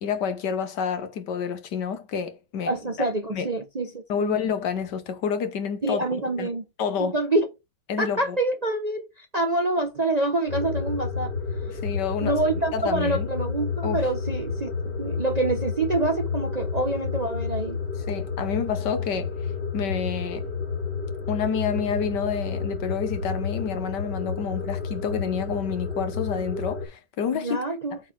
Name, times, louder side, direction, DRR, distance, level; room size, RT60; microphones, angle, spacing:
voice 1, 0.0-2.8 3.3-3.5 4.1-6.5 6.8-7.2 7.9-8.4 11.7-12.4 12.7-13.3 13.8-14.1 18.1-20.5 21.3-27.6 27.9-28.0, left 7 dB, 75° left, 1.6 m, -29 dB
voice 2, 2.7-4.3 5.8-6.6 7.0-7.5 8.0-11.3 12.2-17.8 27.3-28.0, right 2 dB, 30° right, 0.8 m, -26 dB
sound 1, 10.5-26.9, left 5 dB, 55° left, 3.3 m, -30 dB
8.2 x 4.1 x 4.6 m
omnidirectional pair, 1.9 m